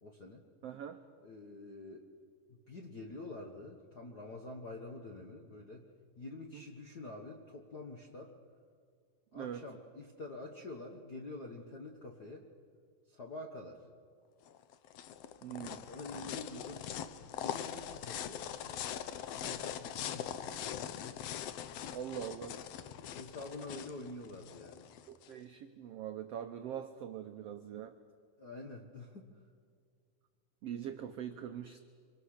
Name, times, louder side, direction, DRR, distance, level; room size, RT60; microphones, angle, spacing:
voice 1, 0.0-0.4 1.2-2.1 2.7-5.8 6.2-8.3 9.3-12.5 13.1-13.8 15.9-16.8 17.2-19.0 19.3-20.3 23.2-24.9 28.4-29.3, left 2 dB, 55° left, 2 dB, 1.0 m, -47 dB
voice 2, 0.6-1.0 6.5-6.6 9.3-9.7 15.4-15.8 20.5-20.6 21.9-22.6 25.0-28.0 30.6-31.8, right 9 dB, 80° right, 7 dB, 1.4 m, -43 dB
sound 1, 14.5-25.3, left 10 dB, 80° left, 1.4 m, -42 dB
25.0 x 25.0 x 6.6 m, 2.1 s
omnidirectional pair, 3.9 m